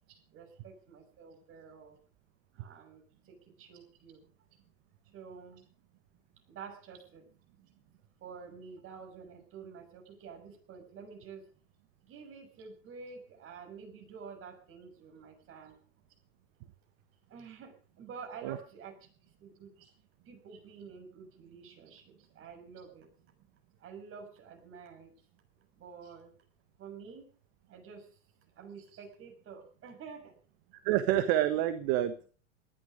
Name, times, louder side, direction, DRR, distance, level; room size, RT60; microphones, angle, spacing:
voice 1, 0.3-2.0 2.5-4.3 5.1-5.6 6.5-7.2 7.6-11.4 12.0-15.8 17.3-19.1 19.4-19.7 20.3-23.1 23.8-25.1 25.7-26.3 26.8-27.3 27.7-28.1 28.6-30.3, right 6 dB, 35° right, 3 dB, 6.7 m, -49 dB
voice 2, 30.8-32.3, right 12 dB, 50° right, 11 dB, 1.6 m, -28 dB
19.0 x 12.0 x 5.1 m, 0.42 s
hypercardioid pair, 110°, 38 cm